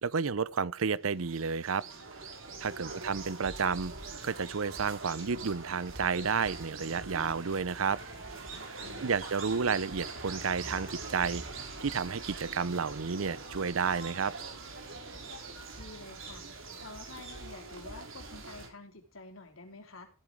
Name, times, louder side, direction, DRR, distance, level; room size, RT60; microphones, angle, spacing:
voice 1, 0.0-1.8 2.6-3.9 4.2-8.0 9.0-11.4 11.8-14.3, right 5 dB, 85° right, 0.7 m, -31 dB
Regional Japan Street Soundscape, 1.0-18.7, right 3 dB, 70° right, 4.0 m, -43 dB
voice 2, 8.8-9.3 15.7-16.5 16.7-20.1, left 3 dB, 80° left, 3.2 m, -49 dB
15.0 x 8.8 x 4.6 m
head